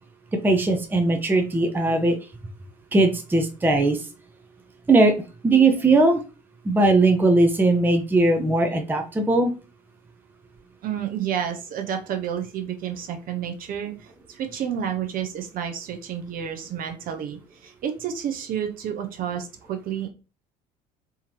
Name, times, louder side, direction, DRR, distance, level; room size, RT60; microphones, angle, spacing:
voice 1, 0.4-2.2 2.9-4.0 4.9-5.1 5.4-6.2 6.7-9.5, right 2 dB, 10° right, 4 dB, 0.6 m, -19 dB
voice 2, 10.8-13.9 14.3-20.1, right 9 dB, 40° right, 5 dB, 0.8 m, -30 dB
3.6 x 2.9 x 2.8 m, 0.32 s
figure-of-eight pair, 65°, 21 cm